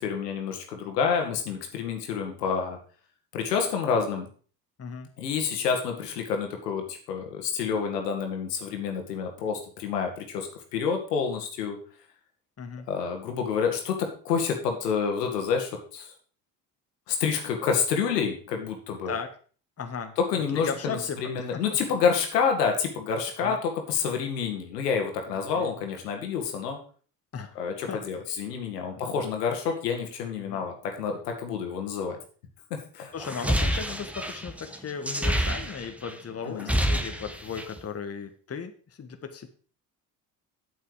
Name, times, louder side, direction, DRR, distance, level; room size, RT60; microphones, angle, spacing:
voice 1, 0.0-2.8 3.3-4.3 5.2-11.8 12.9-16.1 17.1-19.2 20.2-26.8 27.6-32.2 32.7-33.1 36.4-36.8, left 6 dB, 85° left, 3 dB, 1.9 m, -28 dB
voice 2, 4.8-5.1 12.6-12.9 19.0-19.3 19.8-20.1 20.5-21.6 23.4-23.6 25.3-25.7 27.3-27.6 27.9-28.0 28.9-29.3 30.4-30.6 33.1-39.5, left 6 dB, 30° left, 7 dB, 1.5 m, -36 dB
sound 1, 33.2-36.1 36.4-37.8, equal, 5° right, 1.5 m, -28 dB
8.3 x 8.0 x 4.9 m, 0.41 s
hypercardioid pair, 60°, 47 cm